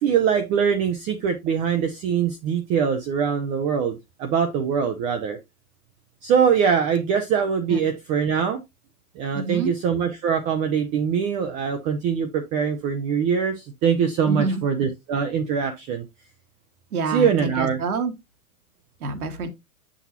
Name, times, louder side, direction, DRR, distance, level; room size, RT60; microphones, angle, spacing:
voice 1, 0.0-5.4 6.2-8.6 9.2-16.0 17.1-17.8, right 7 dB, 20° right, 0.4 m, -23 dB
voice 2, 9.3-9.7 14.3-14.6 16.9-18.1 19.0-19.5, right 4 dB, 80° right, 1.8 m, -27 dB
7.9 x 6.1 x 2.8 m
hypercardioid pair, 130°, 44 cm